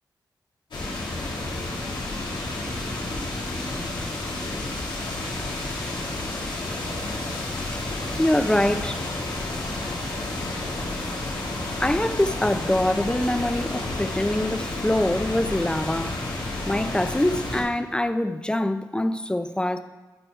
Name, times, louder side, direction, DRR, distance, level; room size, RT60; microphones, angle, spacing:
sound 1, 0.7-17.6, left 2 dB, 85° left, 2.0 m, -30 dB
voice 1, 8.1-9.0 11.8-16.2 16.7-19.8, left 1 dB, 10° left, 0.6 m, -24 dB
13.5 x 4.8 x 4.8 m
cardioid pair, 60°, 8 cm